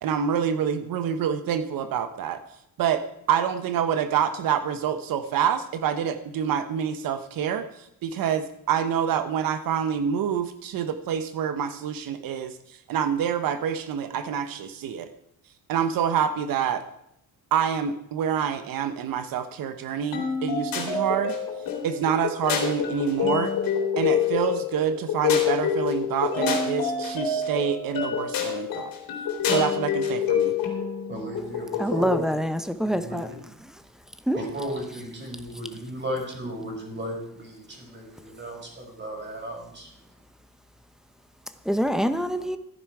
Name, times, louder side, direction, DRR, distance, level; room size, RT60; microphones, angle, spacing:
voice 1, 0.0-2.4 2.8-3.0 3.3-7.7 8.0-12.5 12.9-15.1 15.7-16.8 17.5-21.3 21.8-23.5 24.0-28.9 29.4-30.5, right 8 dB, 80° right, 10 dB, 1.0 m, -27 dB
sound 1, 20.1-32.3, left 6 dB, 80° left, 3.1 m, -27 dB
voice 2, 31.1-32.2 32.9-33.4 34.3-39.9, equal, 30° right, 0 dB, 5.3 m, -35 dB
voice 3, 31.8-33.3 33.6-33.8 34.2-34.4 41.6-42.6, equal, ahead, 10 dB, 0.9 m, -25 dB
14.0 x 10.0 x 4.8 m, 0.77 s
cardioid pair, 125°, 34 cm